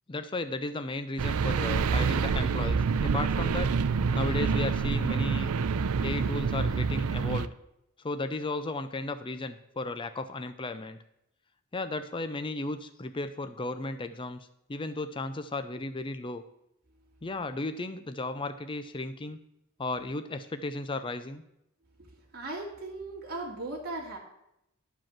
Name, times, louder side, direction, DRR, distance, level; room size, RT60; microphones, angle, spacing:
voice 1, 0.1-3.8 4.1-5.5 6.0-7.5 8.0-11.0 11.7-16.4 17.2-19.4 19.8-21.4, left 2 dB, 25° left, 10 dB, 0.5 m, -35 dB
sound 1, 1.2-7.5, right 5 dB, 85° right, 0.5 m, -27 dB
voice 2, 22.0-24.2, right 2 dB, 45° right, -3 dB, 2.3 m, -38 dB
11.0 x 5.2 x 7.3 m, 0.81 s
head